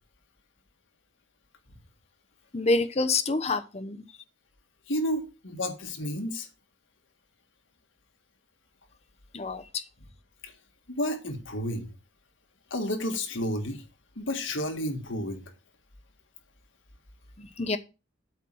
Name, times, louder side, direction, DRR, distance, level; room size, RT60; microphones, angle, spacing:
voice 1, 2.5-4.0 9.3-9.8 17.4-17.8, left 3 dB, 35° left, 0.8 m, -27 dB
voice 2, 4.9-6.5 10.4-10.5 10.9-11.9 12.7-13.8 14.2-15.4, left 1 dB, 75° left, 1.8 m, -31 dB
8.3 x 4.6 x 6.2 m
head